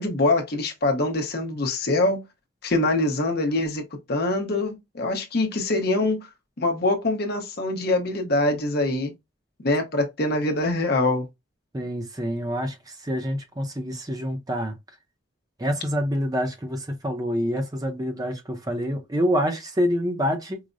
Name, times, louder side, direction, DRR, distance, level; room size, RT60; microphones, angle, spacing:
voice 1, 0.0-2.2 2.6-3.8 4.1-6.2 6.6-9.1 9.6-11.3, left 2 dB, 50° left, 0.8 m, -24 dB
voice 2, 11.7-14.7 15.6-20.6, equal, 20° right, 0.6 m, -27 dB
4.7 x 2.1 x 2.5 m
head